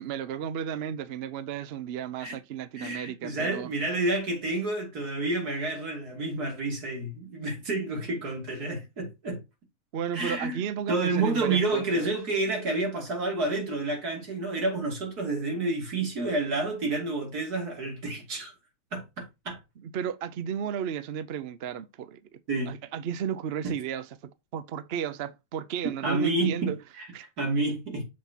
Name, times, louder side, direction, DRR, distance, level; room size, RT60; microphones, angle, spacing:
voice 1, 0.0-3.7 9.9-12.1 19.8-22.4 22.7-24.1 24.5-26.8 27.1-27.3, right 8 dB, 55° right, 0.7 m, -33 dB
voice 2, 2.8-9.4 10.1-10.6 10.9-18.5 18.9-19.6 22.5-22.8 23.6-23.7 26.0-26.7 27.0-27.1 27.4-28.0, right 2 dB, 80° right, 3.3 m, -29 dB
7.6 x 6.1 x 2.9 m
omnidirectional pair, 1.6 m